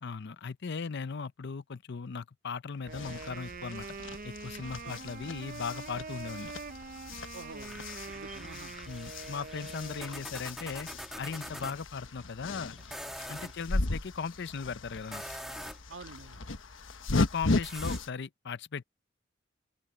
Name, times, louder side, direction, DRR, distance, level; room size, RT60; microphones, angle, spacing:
voice 1, 0.0-3.9 4.2-6.5 8.9-10.9 11.2-12.8 13.3-15.2 17.1-18.8, left 5 dB, 60° left, 0.6 m, -38 dB
sound 1, 2.9-18.1, left 2 dB, 80° left, 1.2 m, -37 dB
Wind instrument woodwind instrument, 2.9-10.5, right 4 dB, 45° right, 0.7 m, -44 dB
voice 2, 7.3-8.8 11.6-11.7 13.3-13.5 15.9-16.5, right 3 dB, 70° right, 1.7 m, -48 dB
sound 2, 7.6-11.8 12.8-13.5 15.0-15.9 17.6-18.0, equal, ahead, 2.0 m, -44 dB
head